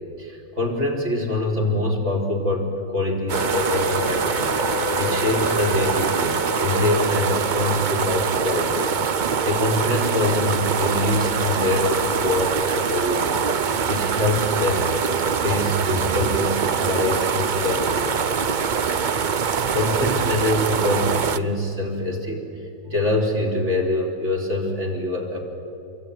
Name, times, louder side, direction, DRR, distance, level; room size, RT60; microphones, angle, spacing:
voice 1, 0.0-4.5 5.0-13.5 13.9-14.9 15.4-18.2 19.7-22.4 22.8-25.4, left 2 dB, 40° right, 0 dB, 4.1 m, -24 dB
sound 1, 3.3-7.2, left 5 dB, 50° left, 1.1 m, -31 dB
sound 2, 3.3-21.4, right 6 dB, 65° right, 0.4 m, -23 dB
28.0 x 23.0 x 9.3 m, 2.8 s
omnidirectional pair, 1.9 m